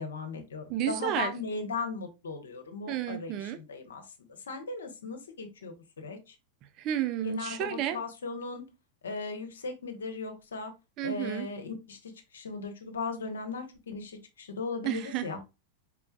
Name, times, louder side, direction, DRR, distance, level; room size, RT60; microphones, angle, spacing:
voice 1, 0.0-4.1 4.5-6.3 7.2-8.6 9.0-10.7 11.0-15.4, left 4 dB, 70° left, 0.8 m, -37 dB
voice 2, 0.7-1.3 2.9-3.6 6.8-8.0 11.0-11.5 14.8-15.3, right 11 dB, 40° right, 0.4 m, -31 dB
4.4 x 3.7 x 2.2 m
figure-of-eight pair, 90°, 0 cm